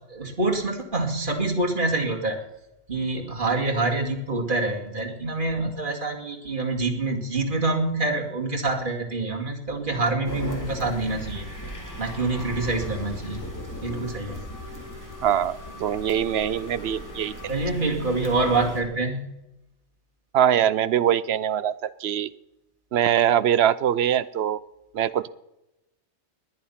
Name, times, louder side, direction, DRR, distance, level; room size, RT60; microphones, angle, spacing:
voice 1, 0.1-2.4 2.9-11.5 12.0-13.5 13.8-14.4 17.5-19.3, right 2 dB, 35° right, 0 dB, 2.6 m, -26 dB
sound 1, 10.3-18.8, equal, 15° left, 2.9 m, -37 dB
sound 2, 11.1-17.5, left 2 dB, 85° left, 6.4 m, -45 dB
voice 2, 15.2-17.5 20.3-22.3 22.9-24.6 24.9-25.3, right 10 dB, 60° right, 15 dB, 0.8 m, -23 dB
20.5 x 9.6 x 5.7 m, 0.93 s
omnidirectional pair, 1.4 m